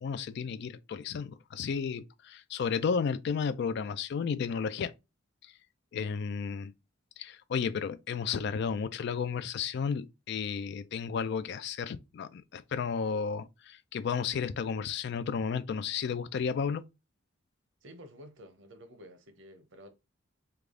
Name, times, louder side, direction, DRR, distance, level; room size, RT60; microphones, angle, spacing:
voice 1, 0.0-4.9 5.9-6.7 7.2-16.9, left 6 dB, 55° left, 0.3 m, -33 dB
voice 2, 17.8-19.9, equal, 65° right, 0.7 m, -51 dB
3.3 x 2.3 x 3.6 m
head